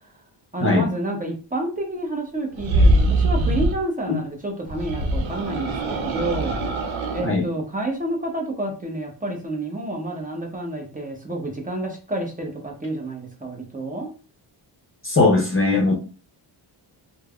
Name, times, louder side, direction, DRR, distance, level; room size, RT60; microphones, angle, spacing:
voice 1, 0.5-6.5 7.1-14.1, right 1 dB, 15° right, 0 dB, 0.9 m, -29 dB
sound 1, 2.5-3.8 4.7-7.3, right 1 dB, 65° right, 0.8 m, -22 dB
voice 2, 15.0-15.9, left 3 dB, 25° left, -1 dB, 0.7 m, -19 dB
3.2 x 2.1 x 2.3 m, 0.36 s
cardioid pair, 80°, 50 cm